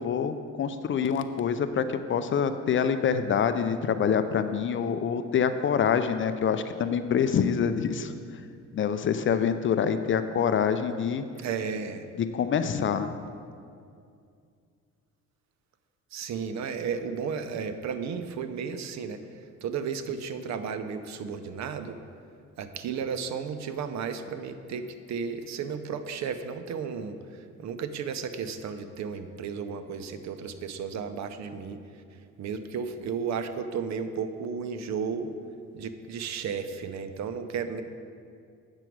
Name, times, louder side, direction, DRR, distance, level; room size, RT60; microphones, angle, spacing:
voice 1, 0.0-8.1 8.7-11.3 12.2-13.1, left 7 dB, 40° left, 10 dB, 0.4 m, -26 dB
voice 2, 11.4-12.1 16.1-19.2 19.6-22.0 22.6-31.8 32.4-35.3 35.7-37.8, right 6 dB, 60° right, 10 dB, 0.6 m, -33 dB
8.5 x 6.1 x 4.6 m, 2.4 s
cardioid pair, 100°, 31 cm